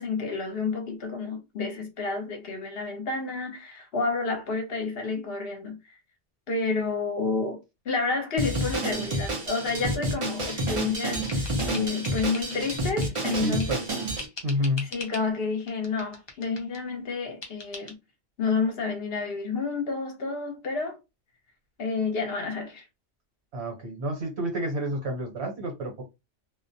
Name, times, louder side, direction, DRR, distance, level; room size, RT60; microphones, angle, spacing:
voice 1, 0.0-6.0 6.5-13.8 14.8-18.0 18.4-21.0 21.8-22.8, left 4 dB, 60° left, 0.8 m, -30 dB
Drum kit, 8.4-14.2, right 1 dB, 40° right, 0.4 m, -29 dB
sound 1, 10.2-13.9 14.2-15.3 15.7-16.8 17.4-17.9, left 3 dB, 40° left, 0.4 m, -43 dB
voice 2, 13.4-13.8 14.4-14.9 23.5-26.0, equal, 65° right, 1.1 m, -29 dB
2.4 x 2.0 x 2.6 m
omnidirectional pair, 1.2 m